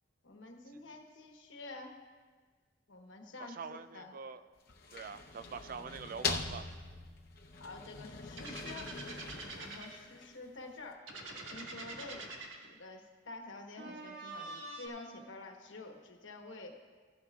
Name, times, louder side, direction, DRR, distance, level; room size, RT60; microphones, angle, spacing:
voice 1, 0.2-2.0 2.9-4.1 7.6-8.9 9.5-11.0 11.5-12.3 12.6-16.8, left 2 dB, 75° left, 3 dB, 1.1 m, -49 dB
voice 2, 3.4-4.4 4.9-6.7, right 5 dB, 45° right, 11 dB, 0.4 m, -44 dB
sound 1, 4.6-10.6, left 4 dB, 50° left, 0.7 m, -42 dB
sound 2, 8.4-10.0 11.1-12.7 13.8-14.9, right 2 dB, 80° right, 1.4 m, -45 dB
15.0 x 11.5 x 2.4 m, 1.5 s
head